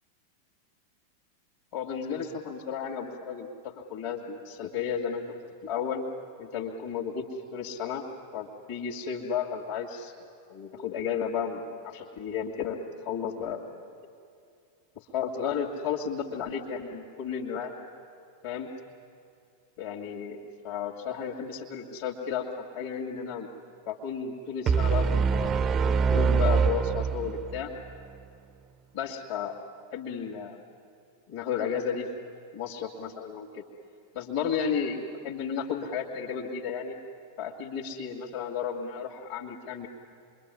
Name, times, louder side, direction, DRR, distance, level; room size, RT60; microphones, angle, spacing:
voice 1, 1.7-6.0 6.4-7.2 7.5-8.0 8.3-10.1 10.5-13.6 15.0-17.7 18.4-18.7 19.8-23.5 23.9-27.7 28.9-29.6 29.9-30.6 31.3-32.1 32.5-33.6 34.1-37.0 37.4-39.9, left 7 dB, 50° left, -2 dB, 2.3 m, -33 dB
sound 1, 24.7-27.7, right 6 dB, 30° right, 0.6 m, -24 dB
27.0 x 22.5 x 9.8 m, 2.4 s
figure-of-eight pair, 90°, 0 cm